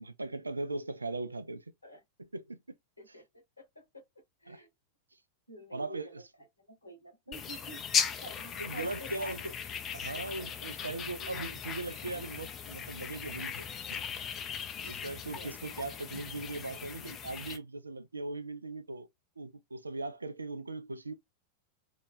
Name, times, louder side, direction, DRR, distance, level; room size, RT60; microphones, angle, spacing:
voice 1, 0.0-1.6 2.2-2.6 3.1-3.2 4.5-4.6 5.7-6.2 8.6-9.5 9.9-13.7 14.8-19.1 19.4-21.1, right 2 dB, 80° right, 0.3 m, -39 dB
voice 2, 3.6-4.0 4.4-4.7 5.5-6.1 6.6-7.8 8.2-9.3 11.2-11.5 15.3-15.8, equal, 85° left, 0.8 m, -49 dB
sound 1, 7.3-17.6, left 7 dB, 30° left, 0.4 m, -38 dB
2.3 x 2.1 x 3.1 m
figure-of-eight pair, 90°, 0 cm